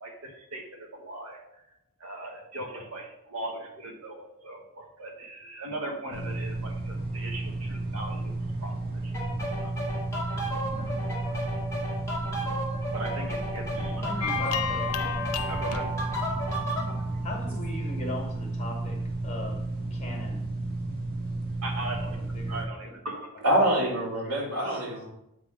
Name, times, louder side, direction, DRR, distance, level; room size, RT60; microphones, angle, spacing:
voice 1, 0.0-1.5 2.0-8.3 8.6-8.7 9.0-9.1 9.6-9.7 12.9-14.1 15.5-15.9 21.6-22.2 22.5-23.3, right 2 dB, 70° right, 2 dB, 1.3 m, -38 dB
sound 1, 6.1-22.6, right 2 dB, 45° right, 1.3 m, -33 dB
sound 2, 9.1-16.9, equal, 15° left, 1.4 m, -34 dB
voice 2, 14.0-14.9 17.2-19.6 19.9-20.4 22.1-23.0, left 2 dB, 30° left, 1 dB, 1.6 m, -39 dB
sound 3, 14.2-17.7, left 6 dB, 90° left, 0.6 m, -34 dB
voice 3, 23.4-25.1, right 1 dB, 85° right, -3 dB, 2.5 m, -25 dB
7.8 x 3.7 x 5.0 m, 0.83 s
head